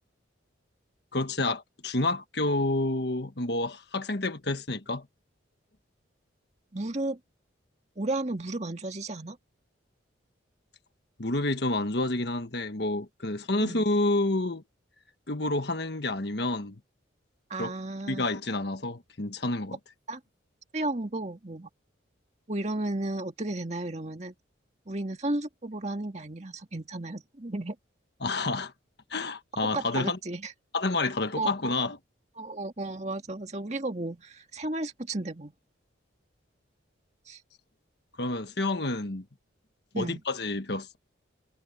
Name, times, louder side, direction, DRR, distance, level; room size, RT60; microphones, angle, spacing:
voice 1, 1.1-5.1 11.2-14.6 15.3-16.8 17.6-17.7 18.1-19.8 28.2-28.7 29.1-30.2 30.7-32.0 38.2-39.2 39.9-41.0, left 2 dB, 55° left, 1.5 m, -29 dB
voice 2, 6.7-7.2 8.0-9.4 13.6-13.8 17.5-18.3 20.1-20.2 20.7-21.7 22.5-24.3 24.9-27.8 29.6-30.5 31.4-31.5 32.4-35.5 37.3-37.4 39.9-40.2, right 2 dB, 35° right, 1.9 m, -33 dB
head